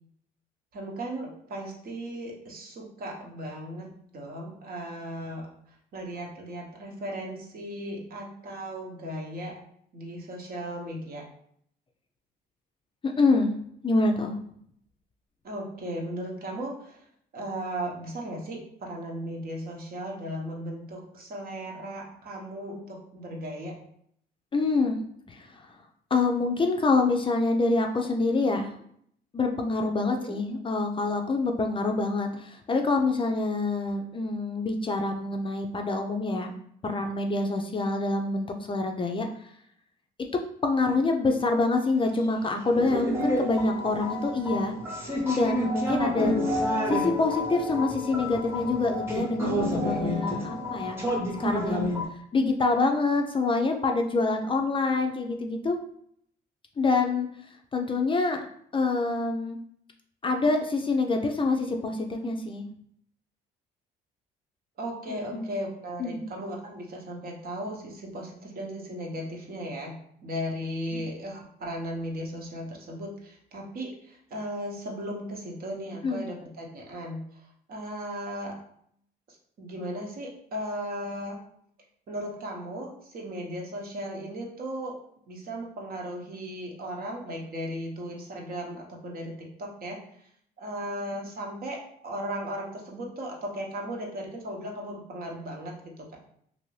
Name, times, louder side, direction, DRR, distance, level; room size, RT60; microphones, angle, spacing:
voice 1, 0.7-5.5 5.9-9.6 9.9-11.3 15.4-17.0 17.3-23.7 30.1-30.3 64.8-78.5 79.3-81.4 82.1-84.9 85.3-90.0 90.6-96.2, equal, 50° right, 0 dB, 0.9 m, -36 dB
voice 2, 13.0-13.5 13.8-14.4 24.5-25.0 25.3-25.5 26.1-28.7 29.3-36.6 36.8-39.3 40.6-44.7 45.2-46.3 46.9-51.0 51.4-51.9 52.3-55.8 56.8-57.3 57.7-58.5 58.7-59.6 60.2-62.6 65.1-65.5 66.0-66.2 76.0-76.2, left 3 dB, 30° left, 3 dB, 0.4 m, -26 dB
sound 1, 42.7-52.1, equal, 10° right, 0.9 m, -29 dB
2.6 x 2.6 x 3.1 m, 0.67 s
supercardioid pair, 70°, 19 cm